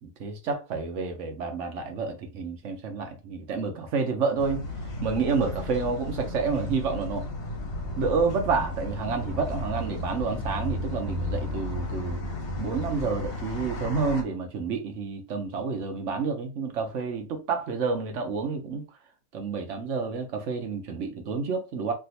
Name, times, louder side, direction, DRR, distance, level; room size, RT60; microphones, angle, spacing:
voice 1, 0.0-4.6 5.0-7.2 8.0-12.2 12.6-18.8 19.3-21.9, right 5 dB, 60° right, 1.0 m, -29 dB
sound 1, 4.4-14.2, left 1 dB, 50° left, 0.8 m, -33 dB
3.4 x 2.5 x 2.8 m
omnidirectional pair, 1.5 m